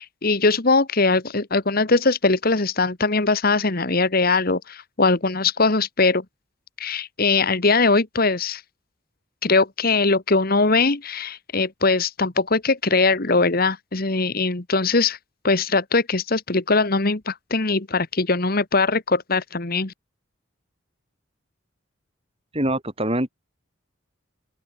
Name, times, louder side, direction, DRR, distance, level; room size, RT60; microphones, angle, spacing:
voice 1, 0.0-6.2 6.8-8.6 9.4-15.2 15.4-19.9, left 3 dB, 45° left, 1.5 m, -21 dB
voice 2, 22.5-23.3, right 1 dB, 30° right, 7.6 m, -24 dB
open air
head